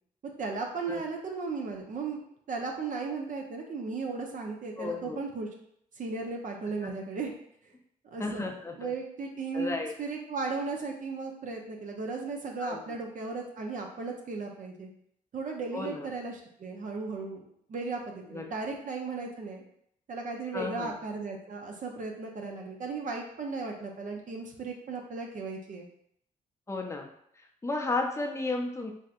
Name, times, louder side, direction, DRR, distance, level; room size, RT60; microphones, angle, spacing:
voice 1, 0.4-5.5 6.0-7.3 8.1-14.9 15.3-19.6 20.1-25.9, right 4 dB, 60° right, 1 dB, 0.6 m, -36 dB
voice 2, 4.8-5.2 6.8-6.9 8.2-8.9 9.5-9.9 12.6-12.8 15.7-16.1 18.3-18.4 20.5-20.9 26.7-27.1 27.4-28.9, left 3 dB, 20° left, 2 dB, 0.5 m, -33 dB
3.3 x 2.7 x 2.4 m, 0.70 s
cardioid pair, 75°, 15 cm